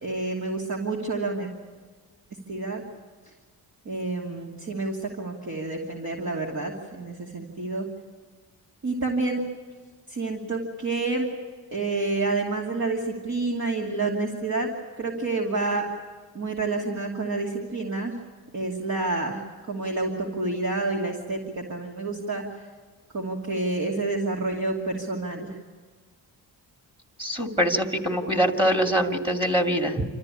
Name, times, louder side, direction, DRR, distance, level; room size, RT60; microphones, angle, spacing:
voice 1, 0.0-1.5 2.5-2.8 3.8-7.9 8.8-9.4 10.1-11.3 11.7-14.7 15.0-15.9 16.3-18.2 18.5-22.6 23.1-25.6, right 3 dB, 45° right, -1 dB, 2.7 m, -29 dB
voice 2, 27.2-30.0, equal, 15° right, 4 dB, 2.5 m, -23 dB
27.5 x 14.0 x 9.9 m, 1.5 s
cardioid pair, 90°, 39 cm